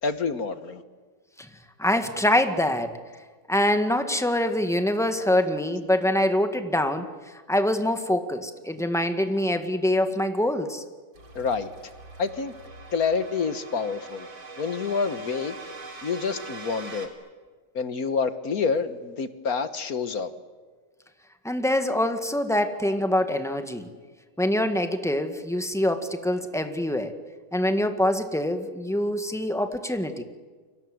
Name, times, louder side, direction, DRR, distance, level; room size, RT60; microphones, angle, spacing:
voice 1, 0.0-0.8 11.3-11.7 12.2-12.5 12.9-14.3 14.6-15.6 16.0-17.1 17.7-20.3, left 5 dB, 50° left, 11 dB, 1.5 m, -27 dB
voice 2, 1.8-3.0 3.5-7.1 7.5-10.8 21.4-23.9 24.4-27.2 27.5-30.2, left 1 dB, ahead, 7 dB, 1.5 m, -24 dB
sound 1, 11.1-17.1, right 3 dB, 65° right, 3.8 m, -43 dB
29.5 x 24.5 x 7.9 m, 1.4 s
omnidirectional pair, 2.3 m